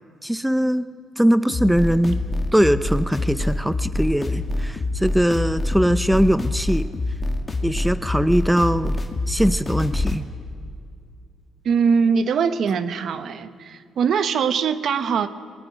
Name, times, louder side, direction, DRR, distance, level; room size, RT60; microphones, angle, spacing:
voice 1, 0.2-0.9 1.2-2.2 2.5-6.9 7.6-9.0 9.3-10.2, equal, 5° right, 13 dB, 0.6 m, -21 dB
sound 1, 1.5-10.2, left 2 dB, 25° left, 2.2 m, -25 dB
voice 2, 11.6-15.3, right 6 dB, 65° right, 11 dB, 1.1 m, -22 dB
26.5 x 20.5 x 5.1 m, 2.2 s
cardioid pair, 90°, 0 cm